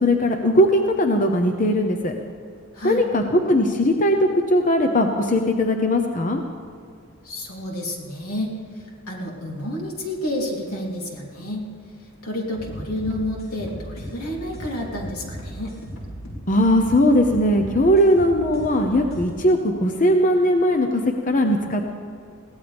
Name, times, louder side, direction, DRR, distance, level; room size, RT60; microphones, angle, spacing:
voice 1, 0.0-2.1 2.8-6.4 16.5-21.9, equal, 35° left, 4 dB, 0.9 m, -19 dB
voice 2, 2.7-3.1 7.2-11.7 12.2-15.8, left 1 dB, 80° left, -2 dB, 3.4 m, -30 dB
sound 1, 12.5-19.3, equal, 65° left, 4.5 m, -36 dB
22.5 x 17.0 x 3.5 m, 2.4 s
head